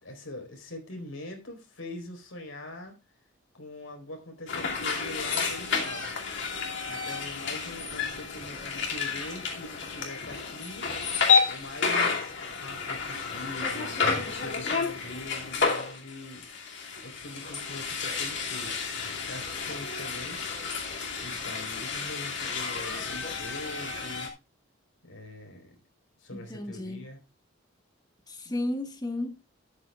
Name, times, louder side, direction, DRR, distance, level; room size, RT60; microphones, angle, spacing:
voice 1, 0.0-3.0 3.5-6.1 6.8-10.9 11.4-16.5 17.0-20.4 21.2-24.3 25.0-25.8 26.2-27.2, left 1 dB, 90° left, 4.3 m, -43 dB
sound 1, 4.5-24.3, left 5 dB, 60° left, 2.5 m, -31 dB
voice 2, 26.3-27.0 28.3-29.3, left 1 dB, 20° left, 1.5 m, -33 dB
13.0 x 9.9 x 2.4 m
head